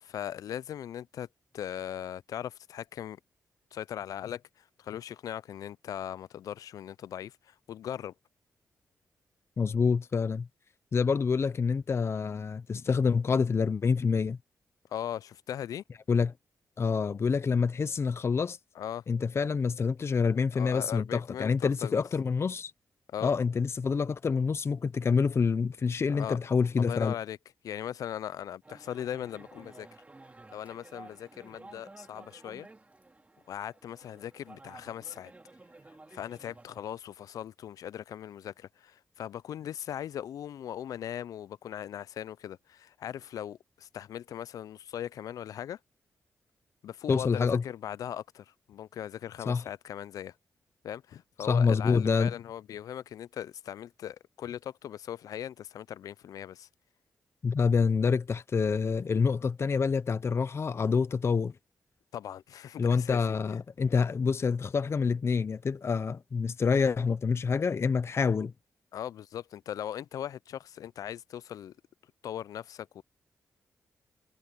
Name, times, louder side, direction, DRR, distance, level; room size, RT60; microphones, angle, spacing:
voice 1, 0.0-1.3 1.5-3.2 3.7-8.1 14.9-15.8 18.8-19.0 20.5-22.0 23.1-23.3 26.1-26.4 26.8-27.4 27.6-29.9 30.5-32.7 33.5-35.3 36.1-45.8 46.8-50.3 50.8-56.7 62.1-63.6 68.9-71.7 72.2-73.0, left 10 dB, 80° left, 0.4 m, -39 dB
voice 2, 9.6-10.5 10.9-14.4 16.1-16.3 16.8-18.6 19.1-22.7 23.2-27.2 47.1-47.6 49.5-49.6 51.5-52.3 57.4-61.5 62.8-68.5, left 5 dB, 45° left, 0.7 m, -27 dB
sound 1, 28.6-36.8, right 2 dB, 25° right, 2.9 m, -53 dB
cardioid pair, 65°, 6 cm